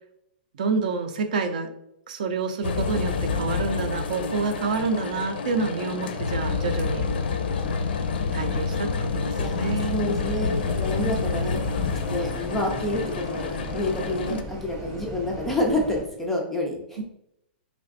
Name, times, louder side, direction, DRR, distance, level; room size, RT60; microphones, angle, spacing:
voice 1, 0.6-1.7 2.1-7.1 8.3-10.2 11.0-11.4 14.3-14.5 17.0-17.1, right 4 dB, 45° right, 8 dB, 0.5 m, -28 dB
sound 1, 2.6-14.4, left 4 dB, 65° left, 0.6 m, -28 dB
voice 2, 9.4-11.6 11.9-17.0, left 1 dB, 5° left, -1 dB, 0.4 m, -28 dB
sound 2, 10.2-16.0, equal, 15° right, 0.8 m, -38 dB
3.4 x 3.2 x 4.0 m, 0.80 s
hypercardioid pair, 180°, 6 cm